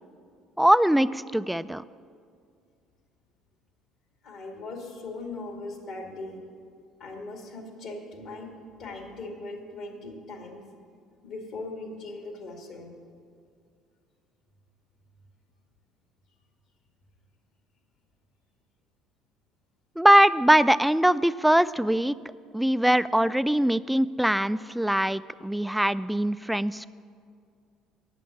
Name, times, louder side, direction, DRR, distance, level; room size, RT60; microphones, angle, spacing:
voice 1, 0.6-1.8 20.0-22.2 22.5-26.9, right 1 dB, 5° right, 16 dB, 0.3 m, -22 dB
voice 2, 4.2-6.4 7.0-8.5 8.8-10.6 11.2-12.9, left 2 dB, 65° left, 2 dB, 2.2 m, -39 dB
9.1 x 7.5 x 8.5 m, 2.3 s
hypercardioid pair, 60°, 0 cm